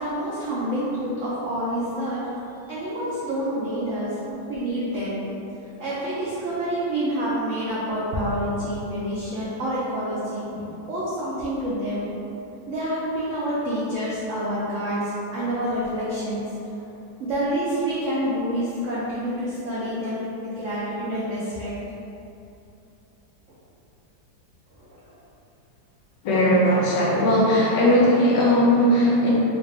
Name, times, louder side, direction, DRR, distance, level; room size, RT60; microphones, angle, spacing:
voice 1, 0.0-2.2 2.6-5.2 5.8-12.1 12.7-16.8 17.2-21.8 24.7-25.0, equal, 80° right, -9 dB, 0.6 m, -28 dB
voice 2, 26.2-29.3, equal, 70° left, -5 dB, 1.2 m, -18 dB
3.9 x 2.5 x 3.3 m, 2.8 s
omnidirectional pair, 2.1 m